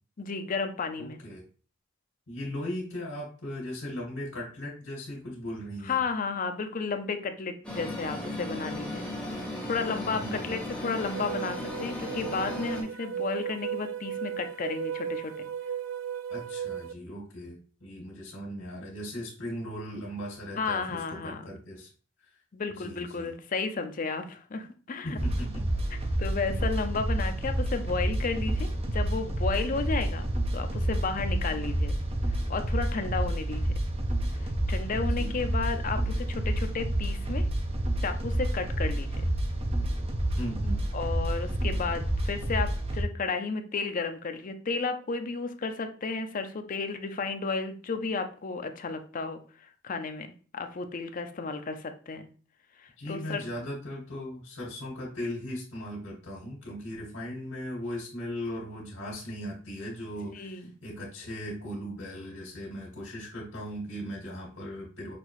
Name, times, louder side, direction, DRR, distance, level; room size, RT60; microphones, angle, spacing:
voice 1, 0.2-1.2 5.8-9.1 9.6-15.5 20.6-21.4 22.5-25.2 25.9-32.0 32.5-33.6 34.7-37.5 38.0-39.3 40.9-50.3 50.5-52.3 52.8-53.4 60.3-60.7, left 4 dB, 45° left, 7 dB, 0.5 m, -33 dB
voice 2, 1.0-1.4 2.3-6.0 10.0-10.6 16.3-21.9 22.7-23.3 25.0-25.6 33.2-33.3 35.0-35.4 40.4-40.8 53.0-65.2, equal, 75° left, -4 dB, 1.8 m, -38 dB
sound 1, 7.6-12.8, left 1 dB, 5° left, 1.0 m, -36 dB
sound 2, 10.9-16.9, right 9 dB, 75° right, 0.4 m, -36 dB
sound 3, 25.2-43.0, right 1 dB, 30° right, 0.6 m, -29 dB
5.9 x 2.7 x 3.0 m, 0.39 s
head